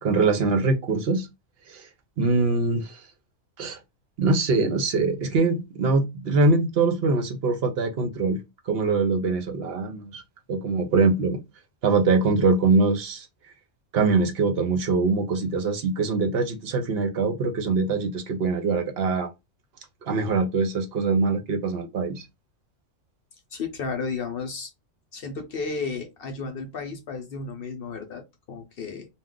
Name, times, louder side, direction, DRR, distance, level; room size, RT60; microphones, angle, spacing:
voice 1, 0.0-1.3 1.7-1.9 2.2-3.0 3.6-3.8 4.2-8.4 8.7-10.2 10.5-11.4 11.8-13.3 13.9-19.3 20.1-22.3, right 3 dB, 60° right, 0.7 m, -23 dB
voice 2, 23.5-24.7 25.1-29.1, left 4 dB, 55° left, 0.7 m, -33 dB
2.3 x 2.2 x 3.6 m
omnidirectional pair, 1.3 m